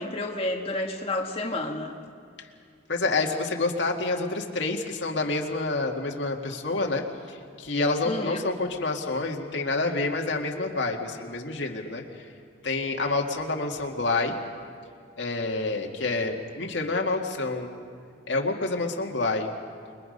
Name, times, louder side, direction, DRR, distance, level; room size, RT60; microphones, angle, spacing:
voice 1, 0.0-1.9 8.0-8.4, left 2 dB, 30° left, 0 dB, 1.6 m, -30 dB
voice 2, 2.9-12.2 12.6-14.3 15.2-17.7 18.3-19.5, left 3 dB, 80° left, 1 dB, 2.0 m, -28 dB
29.0 x 22.0 x 5.4 m, 2.3 s
head